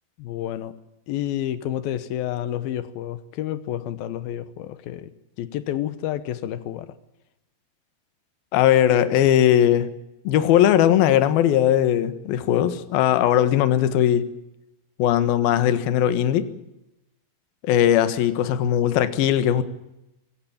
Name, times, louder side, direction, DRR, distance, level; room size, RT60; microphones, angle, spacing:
voice 1, 0.2-0.7 1.1-5.1 5.4-7.0, left 12 dB, 85° left, 2.1 m, -30 dB
voice 2, 8.5-9.9 10.2-14.3 15.0-16.5 17.6-19.6, left 11 dB, 65° left, 2.7 m, -19 dB
25.0 x 16.5 x 8.8 m
omnidirectional pair, 5.7 m